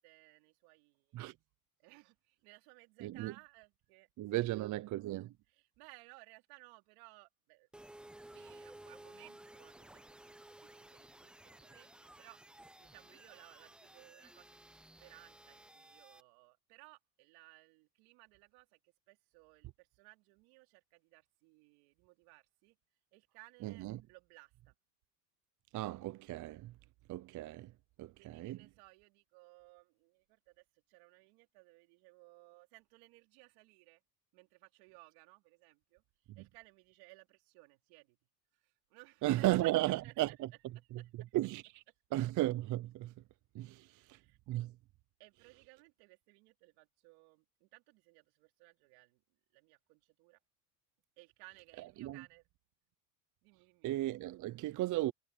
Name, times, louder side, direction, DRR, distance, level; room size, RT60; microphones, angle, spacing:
voice 1, 0.0-1.4 1.8-4.8 5.5-7.7 8.3-14.7 15.0-22.8 23.1-24.8 28.2-34.0 34.3-38.2 38.5-40.4 41.0-41.3 43.6-44.4 45.2-49.2 49.5-50.4 51.2-52.5 53.4-53.9, right 26 dB, 80° right, 4.4 m, -61 dB
voice 2, 3.0-3.3 4.2-5.3 23.6-24.0 25.7-26.7 27.1-27.7 28.0-28.6 36.4-36.5 39.2-40.5 41.3-41.8 42.1-43.2 43.5-44.2 44.5-44.8 52.0-52.2 53.8-55.1, right 16 dB, 40° right, 0.6 m, -35 dB
sound 1, 7.7-16.2, right 1 dB, ahead, 0.3 m, -56 dB
cardioid pair, 130°, 47 cm